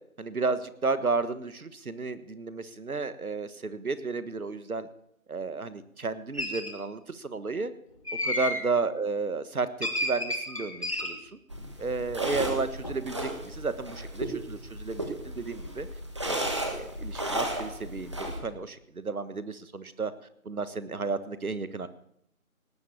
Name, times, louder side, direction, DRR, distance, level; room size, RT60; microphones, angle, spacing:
voice 1, 0.2-4.9 5.3-7.7 8.2-11.4 11.8-15.9 16.2-20.1 20.4-21.9, right 4 dB, 80° right, 13 dB, 1.5 m, -32 dB
sound 1, 6.3-6.7 8.1-8.7 9.8-11.2 12.4-12.6 12.8-13.3, left 1 dB, 25° left, 1.2 m, -31 dB
sound 2, 11.5-18.4, right 1 dB, 20° right, 1.4 m, -35 dB
18.5 x 7.4 x 8.6 m, 0.73 s
figure-of-eight pair, 170°, 43 cm